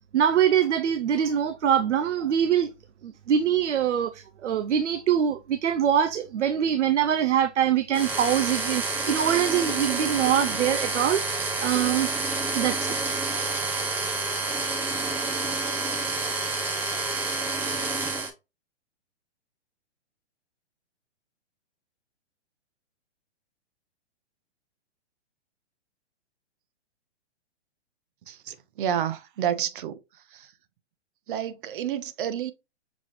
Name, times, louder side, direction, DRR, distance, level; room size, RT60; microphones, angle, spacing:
voice 1, 0.1-2.7 3.0-12.1 12.5-12.9 14.5-14.6, right 9 dB, 85° right, 0.6 m, -24 dB
sound 1, 7.9-18.3, right 3 dB, 5° right, 0.4 m, -28 dB
voice 2, 28.3-30.0 30.3-30.5 31.3-32.5, right 9 dB, 50° right, 0.7 m, -30 dB
6.1 x 2.4 x 3.0 m
hypercardioid pair, 130°, 34 cm